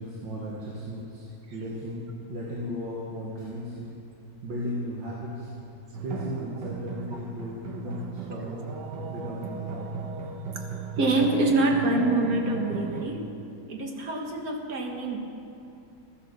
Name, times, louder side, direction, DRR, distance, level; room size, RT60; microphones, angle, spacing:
voice 1, 0.0-4.0 4.4-5.5 6.0-8.7 9.1-9.8, equal, 90° right, -5 dB, 2.4 m, -36 dB
sound 1, 5.9-13.1, right 5 dB, 75° right, 1.6 m, -36 dB
voice 2, 11.0-13.3 13.7-15.2, right 2 dB, 55° right, 2 dB, 1.9 m, -26 dB
14.0 x 10.0 x 6.8 m, 2.7 s
omnidirectional pair, 1.9 m